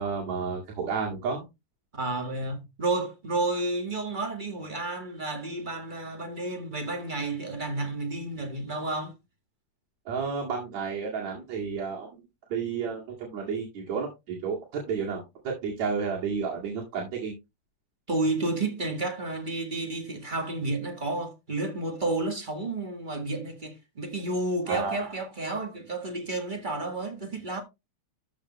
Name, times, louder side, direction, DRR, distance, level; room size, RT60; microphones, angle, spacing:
voice 1, 0.0-1.4 10.1-12.1 12.5-14.6 14.9-17.3 24.7-25.1, right 5 dB, 70° right, 3.4 m, -31 dB
voice 2, 1.9-9.1 18.1-27.6, right 2 dB, 20° right, 1.3 m, -31 dB
13.5 x 5.2 x 3.1 m
omnidirectional pair, 3.3 m